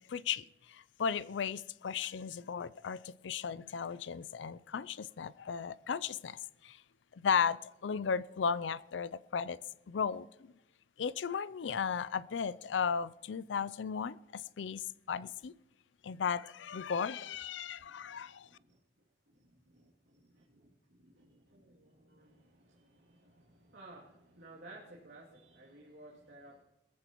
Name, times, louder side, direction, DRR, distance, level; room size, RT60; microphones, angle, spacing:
voice 1, 0.1-6.8 7.1-9.6 9.9-10.5 11.0-15.5 16.0-18.5, left 6 dB, 80° left, 19 dB, 0.4 m, -35 dB
voice 2, 17.8-18.8 19.3-26.6, right 2 dB, 75° right, -6 dB, 2.7 m, -57 dB
21.5 x 14.5 x 3.0 m, 0.92 s
head